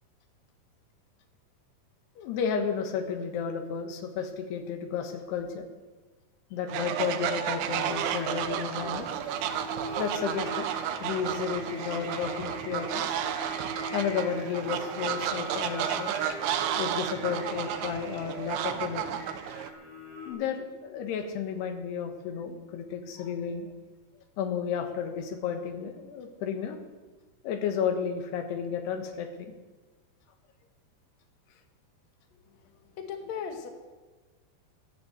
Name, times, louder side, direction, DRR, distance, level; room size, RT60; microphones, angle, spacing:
voice 1, 2.2-5.7 6.5-9.1 9.8-10.7 11.0-13.2 13.9-16.1 16.8-19.2 20.3-23.7 24.4-26.8 27.4-29.5, left 7 dB, 85° left, 6 dB, 3.5 m, -32 dB
Fowl, 6.7-19.7, right 9 dB, 85° right, 2.8 m, -32 dB
Singing, 7.8-20.3, right 1 dB, 15° right, 4.2 m, -41 dB
voice 2, 33.0-33.7, left 7 dB, 65° left, 5 dB, 1.9 m, -36 dB
12.0 x 10.0 x 7.9 m, 1.3 s
omnidirectional pair, 4.6 m